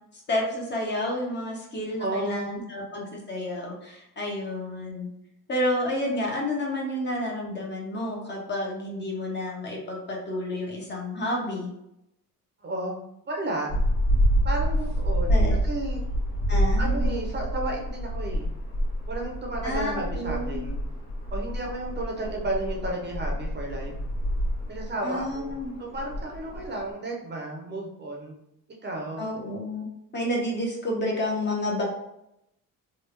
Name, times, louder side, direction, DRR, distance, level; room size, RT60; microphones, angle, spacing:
voice 1, 0.3-5.1 5.5-11.7 15.3-15.6 16.5-17.1 19.6-20.6 25.0-25.7 29.2-29.9 30.1-31.8, left 1 dB, 30° left, -1 dB, 0.9 m, -30 dB
voice 2, 2.0-2.6 12.6-12.9 13.3-13.7 14.4-16.0 16.8-18.5 19.1-20.8 21.3-23.9 24.7-25.5 25.8-28.3 28.8-29.2, right 1 dB, 30° right, 0 dB, 0.6 m, -32 dB
sound 1, 13.7-26.9, equal, 55° left, 1.4 m, -27 dB
3.3 x 2.3 x 3.2 m, 0.81 s
cardioid pair, 145°, 33 cm